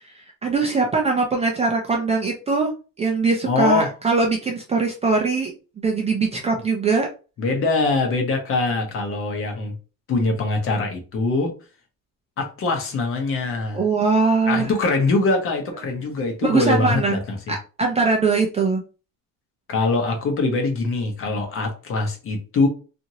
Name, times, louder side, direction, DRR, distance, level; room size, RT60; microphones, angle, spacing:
voice 1, 0.0-2.7 3.0-7.1 13.7-14.7 16.4-17.2 17.5-18.8, right 4 dB, 20° right, 1 dB, 0.3 m, -21 dB
voice 2, 3.5-3.9 7.4-9.7 10.1-11.5 12.4-13.8 14.5-17.5 19.7-22.7, left 3 dB, 40° left, 4 dB, 0.8 m, -23 dB
2.9 x 2.5 x 2.7 m, 0.34 s
cardioid pair, 150°, 35 cm